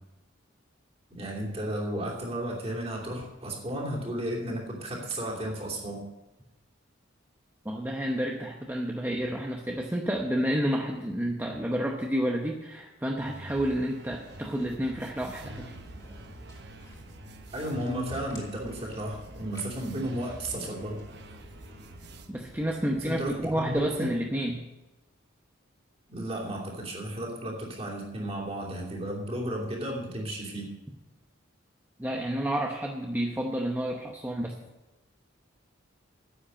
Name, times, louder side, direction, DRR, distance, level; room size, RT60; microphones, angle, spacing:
voice 1, 1.1-6.1 17.5-21.0 23.0-24.1 26.1-30.7, right 1 dB, 30° right, -2 dB, 2.9 m, -34 dB
voice 2, 7.6-15.8 22.3-24.6 32.0-34.6, equal, 10° right, 0 dB, 0.8 m, -30 dB
sound 1, 13.2-22.3, right 1 dB, 55° right, 1.0 m, -46 dB
Walk footsteps, 14.3-24.2, equal, 20° left, 2.4 m, -51 dB
10.0 x 8.2 x 8.7 m, 1.1 s
head